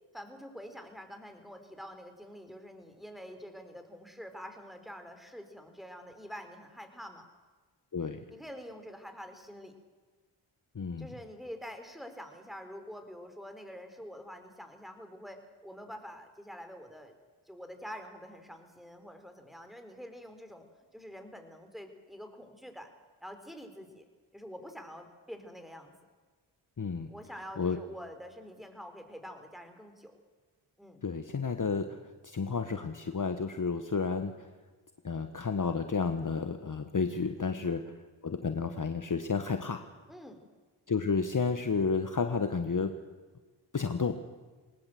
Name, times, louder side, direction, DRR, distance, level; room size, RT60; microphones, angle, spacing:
voice 1, 0.1-7.3 8.3-9.7 11.0-17.1 17.5-20.7 20.9-22.9 23.2-24.1 24.3-25.9 27.1-30.1 30.8-31.0 37.4-37.6 40.1-40.4, equal, ahead, 6 dB, 4.2 m, -46 dB
voice 2, 10.7-11.1 26.8-27.1 27.6-27.8 31.0-32.0 32.2-34.5 35.0-37.9 38.2-39.9 40.9-43.0 43.7-44.2, left 5 dB, 40° left, 8 dB, 1.3 m, -31 dB
20.5 x 19.0 x 7.8 m, 1.4 s
cardioid pair, 55°, 50 cm